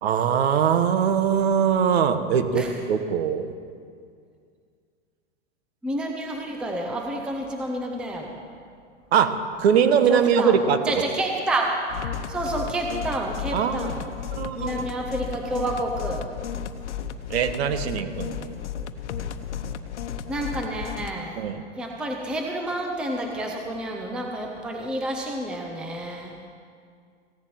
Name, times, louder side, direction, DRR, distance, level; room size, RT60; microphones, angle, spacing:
voice 1, 0.0-3.5 9.1-11.0 13.5-14.7 17.3-18.5 21.4-21.6, right 7 dB, 60° right, 10 dB, 1.3 m, -22 dB
voice 2, 5.8-8.4 10.1-10.6 10.9-11.9 12.3-14.0 14.6-16.3 20.3-21.4 21.8-26.3, right 1 dB, 5° right, 2 dB, 0.6 m, -29 dB
sound 1, 11.9-21.1, left 8 dB, 80° left, 1.0 m, -33 dB
15.5 x 7.3 x 9.2 m, 2.2 s
supercardioid pair, 160°, 35 cm